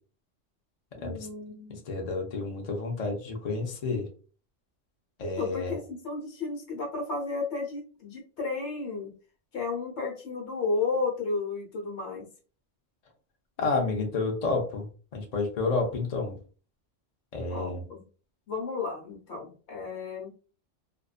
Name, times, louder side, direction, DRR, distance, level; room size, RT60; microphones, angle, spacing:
voice 1, 1.0-1.8 5.2-9.1 9.5-12.3 17.5-18.0 18.5-20.3, left 4 dB, 65° left, 0 dB, 1.1 m, -33 dB
voice 2, 1.7-4.1 5.2-5.8 13.6-16.4 17.3-17.8, left 3 dB, 45° left, 1 dB, 0.5 m, -30 dB
2.5 x 2.2 x 2.4 m, 0.38 s
omnidirectional pair, 1.3 m